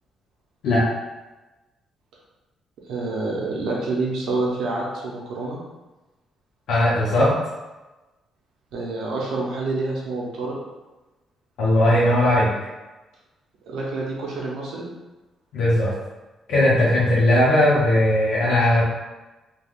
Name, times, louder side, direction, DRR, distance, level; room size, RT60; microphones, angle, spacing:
voice 1, 2.9-5.6 8.7-10.5 13.6-14.9, right 3 dB, 80° right, -3 dB, 0.6 m, -27 dB
voice 2, 6.7-7.3 11.6-12.5 15.5-15.9 16.5-18.8, left 1 dB, 80° left, -8 dB, 0.8 m, -18 dB
3.4 x 2.3 x 2.4 m, 1.1 s
cardioid pair, 130°, 0 cm